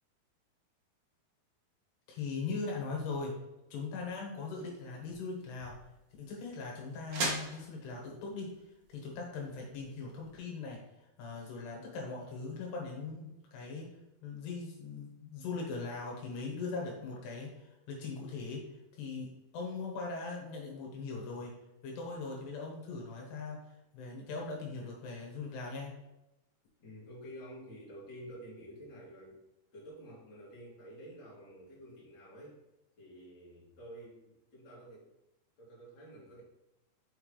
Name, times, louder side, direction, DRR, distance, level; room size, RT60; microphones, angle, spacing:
voice 1, 2.1-3.3 3.7-5.8 6.2-8.6 8.9-10.8 11.2-13.9 14.2-18.7 18.9-21.5 21.8-26.0, left 4 dB, 85° left, 0 dB, 3.5 m, -40 dB
sound 1, 4.4-10.4, right 3 dB, 60° right, 1.5 m, -43 dB
voice 2, 26.8-29.4 29.7-32.6 33.0-35.1 35.6-36.4, equal, 30° left, -7 dB, 2.7 m, -50 dB
6.2 x 5.8 x 3.2 m, 0.93 s
omnidirectional pair, 4.6 m